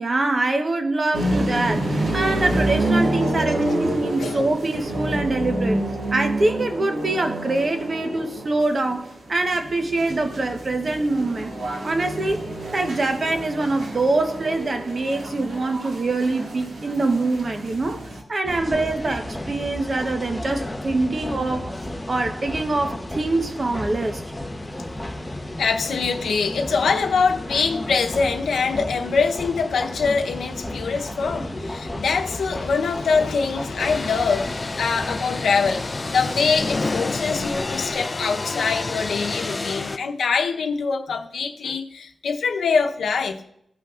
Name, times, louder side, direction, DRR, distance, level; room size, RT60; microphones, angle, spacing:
voice 1, 0.0-5.8 6.1-11.5 11.8-12.4 12.7-18.0 18.3-21.7 22.1-24.2, right 2 dB, 40° right, 1.0 m, -24 dB
sound 1, 1.1-18.2, right 1 dB, 75° right, 1.9 m, -28 dB
sound 2, 18.4-38.0, left 1 dB, 10° left, 1.0 m, -34 dB
voice 2, 25.2-43.4, left 5 dB, 85° left, 0.8 m, -24 dB
sound 3, 33.8-40.0, left 3 dB, 30° left, 0.5 m, -29 dB
17.0 x 5.8 x 2.5 m
wide cardioid pair, 95°, 0 cm